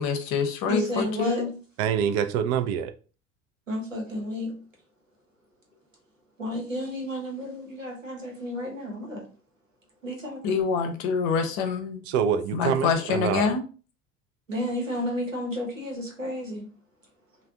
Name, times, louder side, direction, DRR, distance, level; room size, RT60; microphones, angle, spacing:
voice 1, 0.0-1.5 10.4-12.0 12.5-13.6, left 5 dB, 45° left, 0.8 m, -26 dB
voice 2, 0.7-1.5 3.7-4.6 6.4-9.3 10.0-10.7 14.5-16.7, equal, 90° right, 0.9 m, -32 dB
voice 3, 1.8-2.9 12.1-13.5, right 8 dB, 40° right, 0.4 m, -25 dB
3.3 x 2.2 x 3.5 m
figure-of-eight pair, 65°, 38 cm